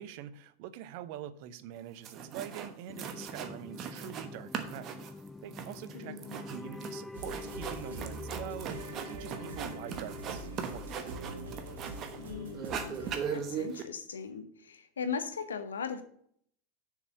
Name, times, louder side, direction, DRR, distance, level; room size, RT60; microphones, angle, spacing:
voice 1, 0.0-4.9 5.4-11.0, right 11 dB, 60° right, 16 dB, 0.6 m, -44 dB
sound 1, 1.8-1.9 2.0-2.7 3.0-4.3 4.5-12.2 12.5-13.8, right 7 dB, 40° right, 1.1 m, -39 dB
sound 2, 2.9-13.7, left 2 dB, 5° left, 0.3 m, -48 dB
voice 2, 5.9-6.4 12.2-16.0, left 6 dB, 80° left, 10 dB, 0.8 m, -39 dB
sound 3, 7.1-13.2, right 1 dB, 75° right, 1.4 m, -43 dB
6.9 x 4.7 x 6.7 m, 0.65 s
hypercardioid pair, 85°, 0 cm